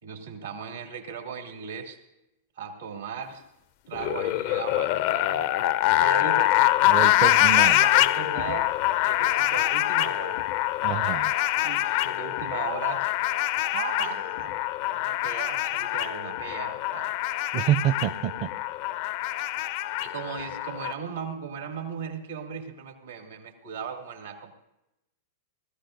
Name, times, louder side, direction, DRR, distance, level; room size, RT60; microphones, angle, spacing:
voice 1, 0.0-2.0 2.6-3.4 3.9-5.4 6.0-6.6 7.9-8.8 9.0-10.4 11.6-13.1 13.7-14.6 14.9-17.1 20.0-24.5, right 6 dB, 85° right, 3 dB, 2.5 m, -37 dB
sound 1, 3.9-20.9, left 15 dB, 55° left, 0.4 m, -25 dB
voice 2, 6.9-7.9 10.8-11.3 17.5-18.5, right 11 dB, 45° right, 10 dB, 0.5 m, -27 dB
19.5 x 14.5 x 2.6 m, 0.90 s
hypercardioid pair, 110°, 0 cm